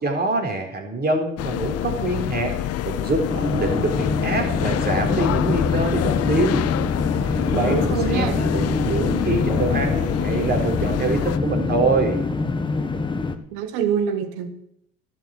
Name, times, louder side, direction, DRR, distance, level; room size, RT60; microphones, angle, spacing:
voice 1, 0.0-2.5 2.8-6.7 7.5-12.2, right 2 dB, 35° right, 2 dB, 4.1 m, -25 dB
sound 1, 1.4-11.4, left 12 dB, 55° left, 0.8 m, -26 dB
sound 2, 3.3-13.4, left 3 dB, 15° left, 1.3 m, -25 dB
voice 2, 7.5-8.4 13.5-14.5, right 7 dB, 80° right, 10 dB, 1.7 m, -25 dB
12.0 x 7.8 x 7.8 m, 0.73 s
supercardioid pair, 85°, 30 cm